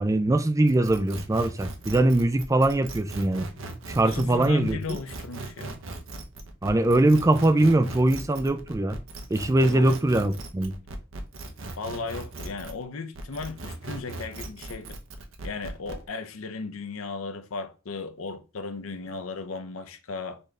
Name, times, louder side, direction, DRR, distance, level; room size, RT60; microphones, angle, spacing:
voice 1, 0.0-3.5 4.0-4.8 6.6-9.0 9.3-10.7, right 2 dB, 15° right, 0.3 m, -22 dB
sound 1, 0.7-12.8 13.2-16.0, right 2 dB, 70° right, 0.9 m, -39 dB
voice 2, 4.1-5.8 9.7-9.9 11.8-15.0 15.4-20.4, left 4 dB, 85° left, 0.7 m, -36 dB
4.2 x 3.3 x 3.6 m
head